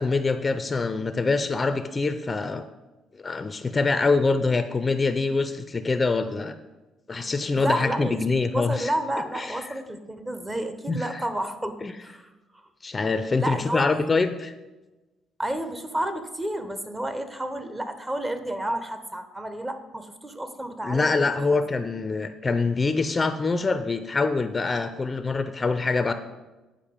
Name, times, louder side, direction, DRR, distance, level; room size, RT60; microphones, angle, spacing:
voice 1, 0.0-2.6 3.2-6.5 7.1-8.9 9.3-9.6 10.9-11.2 11.8-11.9 12.8-14.5 20.8-26.1, left 3 dB, 25° left, 10 dB, 0.4 m, -25 dB
voice 2, 7.5-8.2 8.5-12.3 13.4-13.9 15.4-21.6, right 1 dB, 20° right, 9 dB, 0.8 m, -31 dB
8.9 x 5.3 x 5.0 m, 1.1 s
cardioid pair, 95°, 0 cm